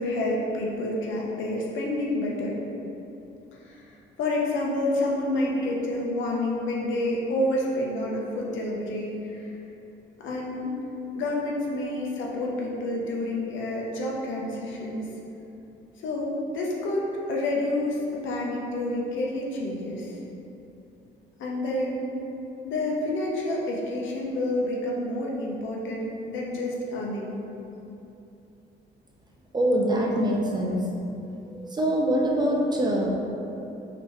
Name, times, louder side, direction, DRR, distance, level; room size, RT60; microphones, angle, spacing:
voice 1, 0.0-2.6 3.6-3.8 4.2-9.5 10.2-10.7 11.1-15.1 16.0-20.2 21.4-22.2 22.6-27.4, left 1 dB, 75° left, -3 dB, 0.7 m, -29 dB
voice 2, 29.5-30.9 31.5-33.1, right 1 dB, 20° right, -1 dB, 0.5 m, -24 dB
3.6 x 2.8 x 2.9 m, 2.9 s
cardioid pair, 90°, 20 cm